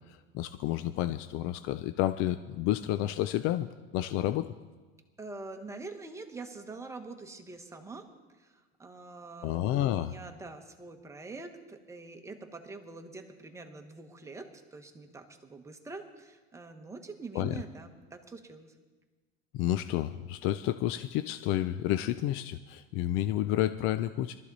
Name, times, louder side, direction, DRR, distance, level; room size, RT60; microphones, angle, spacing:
voice 1, 0.1-3.7 3.9-4.5 9.4-10.2 17.3-17.6 19.5-24.4, left 13 dB, 45° left, 11 dB, 0.4 m, -30 dB
voice 2, 5.2-8.1 8.4-18.7, right 3 dB, 10° right, 5 dB, 1.2 m, -45 dB
22.0 x 13.0 x 4.0 m, 1.3 s
cardioid pair, 155°, 30 cm